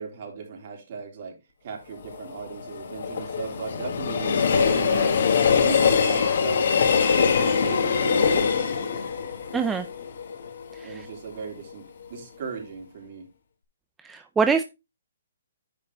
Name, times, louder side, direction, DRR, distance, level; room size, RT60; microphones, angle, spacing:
voice 1, 0.0-5.2 5.5-6.6 7.3-9.0 10.8-13.3, right 5 dB, 50° right, 1 dB, 3.8 m, -37 dB
Train, 1.9-11.0 11.4-11.5, left 6 dB, 65° left, 1.8 m, -23 dB
voice 2, 9.5-9.8 14.1-14.6, right 5 dB, 10° right, 7 dB, 0.5 m, -23 dB
9.8 x 5.2 x 3.5 m, 0.25 s
hypercardioid pair, 150°, 0 cm